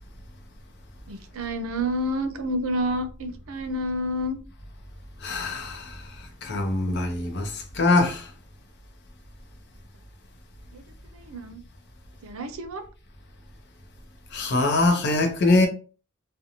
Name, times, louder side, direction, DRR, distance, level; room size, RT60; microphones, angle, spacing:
voice 1, 1.1-4.4 10.7-10.8 11.1-11.6 12.2-12.8, equal, 90° right, 0.5 m, -29 dB
voice 2, 5.2-8.3 14.3-15.7, left 2 dB, 55° left, 0.6 m, -23 dB
2.5 x 2.1 x 2.8 m
head